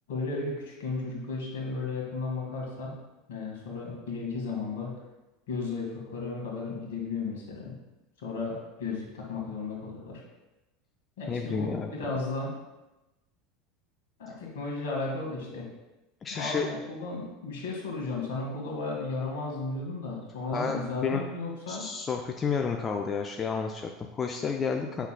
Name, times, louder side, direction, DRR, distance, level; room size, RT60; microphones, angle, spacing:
voice 1, 0.1-3.0 3.3-4.9 5.5-7.8 8.2-10.2 11.2-12.5 14.2-15.7 16.3-21.9, left 3 dB, 70° left, -1 dB, 1.8 m, -34 dB
voice 2, 11.3-11.9 16.2-16.7 20.5-21.2 21.7-25.1, left 5 dB, 30° left, 3 dB, 0.5 m, -31 dB
8.0 x 5.7 x 2.3 m, 1.0 s
figure-of-eight pair, 75°, 0 cm